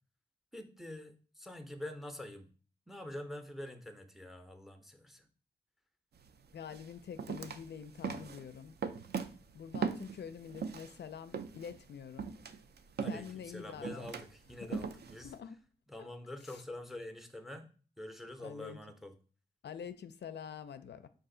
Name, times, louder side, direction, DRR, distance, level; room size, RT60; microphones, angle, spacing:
voice 1, 0.5-2.5 2.9-5.3 13.0-15.3 15.9-17.7 18.0-19.2, left 1 dB, ahead, 0.5 m, -46 dB
sound 1, 6.2-6.3 6.7-11.0 11.3-15.3, right 6 dB, 65° right, 0.4 m, -39 dB
voice 2, 6.5-8.8 9.5-12.3 13.1-14.1 14.6-14.8 15.2-15.6 16.4-16.6 18.4-18.8 19.6-21.1, left 7 dB, 70° left, 0.4 m, -46 dB
4.9 x 2.5 x 3.7 m
wide cardioid pair, 105°, 18 cm